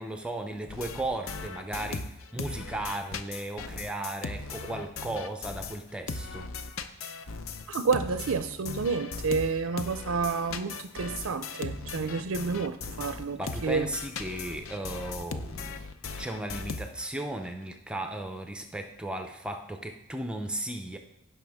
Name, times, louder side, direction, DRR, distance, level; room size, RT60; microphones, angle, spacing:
voice 1, 0.0-6.5 13.3-15.7 16.2-21.0, right 1 dB, 5° right, 5 dB, 0.5 m, -36 dB
sound 1, 0.7-5.8 6.1-17.2, left 4 dB, 70° left, 0.6 m, -38 dB
voice 2, 7.7-13.9, right 4 dB, 75° right, 10 dB, 0.5 m, -30 dB
16.5 x 5.6 x 3.5 m, 0.92 s
head